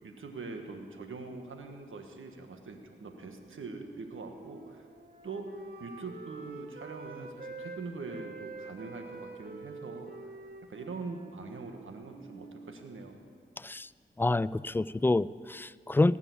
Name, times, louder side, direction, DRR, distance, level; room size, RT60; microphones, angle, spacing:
voice 1, 0.0-4.8 5.2-10.1 10.6-13.2, right 3 dB, 75° right, 5 dB, 1.5 m, -43 dB
Wind instrument woodwind instrument, 2.9-7.8 8.1-13.4, right 3 dB, 50° right, 1.8 m, -47 dB
voice 2, 13.6-13.9 14.2-16.2, left 2 dB, 10° left, 18 dB, 0.3 m, -27 dB
18.0 x 7.0 x 8.4 m, 2.1 s
cardioid pair, 50°, 21 cm